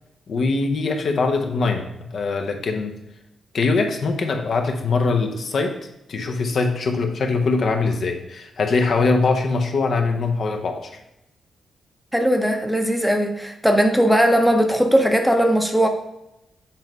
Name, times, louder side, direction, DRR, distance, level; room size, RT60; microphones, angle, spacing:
voice 1, 0.3-2.9 3.5-5.7 6.1-10.9, left 3 dB, 60° left, 4 dB, 0.9 m, -22 dB
voice 2, 12.1-15.9, equal, ahead, 4 dB, 0.8 m, -18 dB
7.3 x 3.1 x 5.3 m, 0.86 s
cardioid pair, 90°, 0 cm